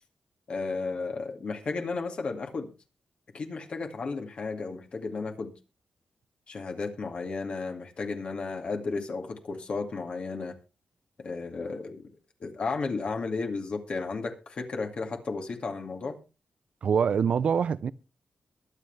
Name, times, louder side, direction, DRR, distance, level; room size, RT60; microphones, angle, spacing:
voice 1, 0.5-2.7 3.3-5.5 6.5-10.6 11.2-12.1 12.4-16.2, left 4 dB, 55° left, 2.2 m, -33 dB
voice 2, 16.8-17.9, right 7 dB, 65° right, 0.6 m, -24 dB
22.0 x 7.7 x 3.4 m
wide cardioid pair, 110°, 2 cm